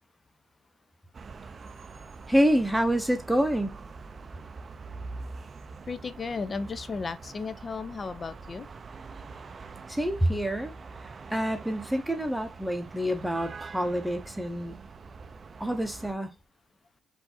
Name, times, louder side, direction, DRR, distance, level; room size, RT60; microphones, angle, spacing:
sound 1, 1.1-16.1, right 4 dB, 40° right, 0.5 m, -44 dB
voice 1, 2.3-3.8 9.9-10.7 11.0-14.8 15.6-16.3, equal, 5° right, 0.7 m, -27 dB
voice 2, 5.9-8.7, left 4 dB, 35° left, 0.5 m, -34 dB
4.7 x 2.6 x 4.1 m
cardioid pair, 90°, 0 cm